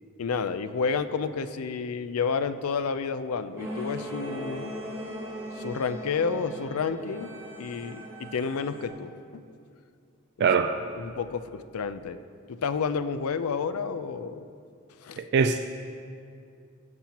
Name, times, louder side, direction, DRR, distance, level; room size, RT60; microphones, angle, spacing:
voice 1, 0.2-4.7 5.6-7.3 7.6-9.5 10.4-10.5 11.0-12.2 12.5-14.4 15.0-15.2, left 5 dB, 80° left, 12 dB, 0.4 m, -30 dB
sound 1, 3.6-8.9, equal, 15° right, 2.6 m, -39 dB
voice 2, 10.4-10.7 15.2-15.7, right 5 dB, 50° right, 8 dB, 0.3 m, -23 dB
17.0 x 7.2 x 2.9 m, 2.4 s
head